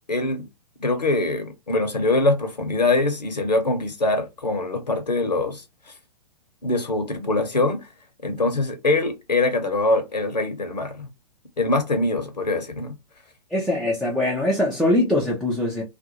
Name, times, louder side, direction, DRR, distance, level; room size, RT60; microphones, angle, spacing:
voice 1, 0.1-0.5 0.8-5.6 6.6-7.9 8.2-11.1 11.6-13.0, left 2 dB, 85° left, 0.8 m, -23 dB
voice 2, 13.5-15.8, left 1 dB, ahead, 0.3 m, -22 dB
2.5 x 2.2 x 2.7 m
figure-of-eight pair, 115°, 21 cm